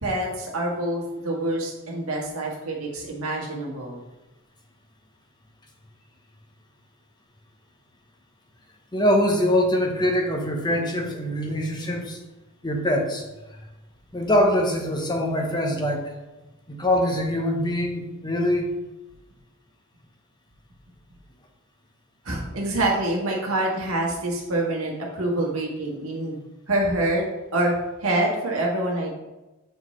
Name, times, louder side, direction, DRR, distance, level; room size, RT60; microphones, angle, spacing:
voice 1, 0.0-4.0 22.2-26.4 26.7-27.3 27.5-29.1, right 1 dB, 75° right, -2 dB, 1.6 m, -26 dB
voice 2, 8.9-12.2 12.6-13.2 14.1-16.1 16.7-18.7, left 1 dB, 20° left, 2 dB, 0.8 m, -23 dB
7.0 x 4.4 x 3.1 m, 1.1 s
head